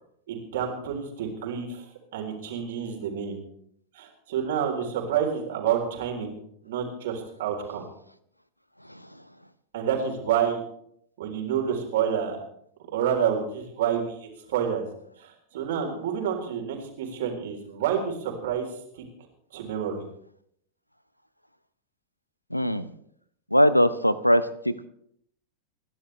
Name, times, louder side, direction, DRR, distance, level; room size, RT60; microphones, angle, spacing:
voice 1, 0.3-1.8 2.1-3.4 3.9-6.4 6.6-7.8 9.7-10.6 11.2-12.4 12.9-14.9 15.2-18.7 18.9-19.0 19.5-20.1, right 8 dB, 55° right, 2 dB, 3.7 m, -28 dB
voice 2, 22.5-22.9 23.5-24.9, equal, 90° left, 16 dB, 0.7 m, -22 dB
29.0 x 11.0 x 3.3 m, 0.69 s
figure-of-eight pair, 90°, 0 cm